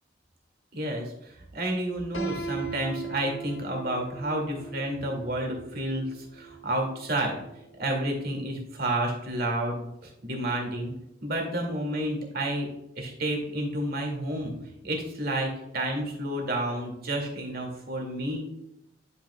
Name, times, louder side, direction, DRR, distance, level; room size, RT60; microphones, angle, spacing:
voice 1, 0.7-7.4 7.8-10.9 11.2-12.7 13.0-14.5 14.8-18.4, right 1 dB, 55° right, 1 dB, 2.2 m, -30 dB
Piano, 2.1-8.0, right 4 dB, 90° left, 1.5 m, -39 dB
10.5 x 5.9 x 2.3 m, 0.86 s
head